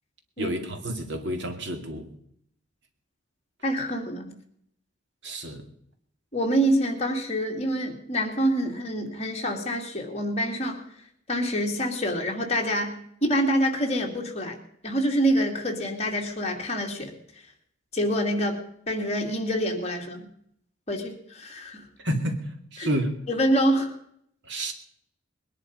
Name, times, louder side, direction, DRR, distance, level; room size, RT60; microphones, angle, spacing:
voice 1, 0.4-2.1 5.2-5.6 22.0-22.4 22.7-23.1 24.5-24.7, right 1 dB, 60° right, 5 dB, 2.3 m, -29 dB
voice 2, 3.6-4.3 6.3-10.8 11.3-14.6 14.8-17.1 17.9-20.3 20.9-21.8 22.8-22.9 23.3-23.9, equal, 35° left, 1 dB, 2.6 m, -26 dB
21.0 x 11.0 x 5.3 m, 0.70 s
head